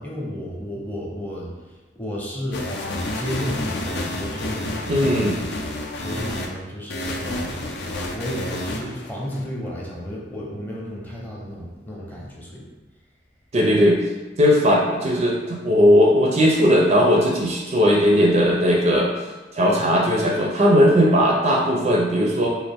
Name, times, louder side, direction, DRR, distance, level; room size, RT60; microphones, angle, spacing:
voice 1, 0.0-5.2 5.9-7.8 8.1-12.7, equal, 10° left, -4 dB, 0.7 m, -33 dB
sound 1, 2.5-6.5 6.9-9.4, left 1 dB, 65° left, 0.5 m, -29 dB
voice 2, 4.9-5.4 13.5-14.0 14.4-19.3 19.5-22.5, equal, 35° right, -1 dB, 0.4 m, -18 dB
4.0 x 2.4 x 3.4 m, 1.2 s
head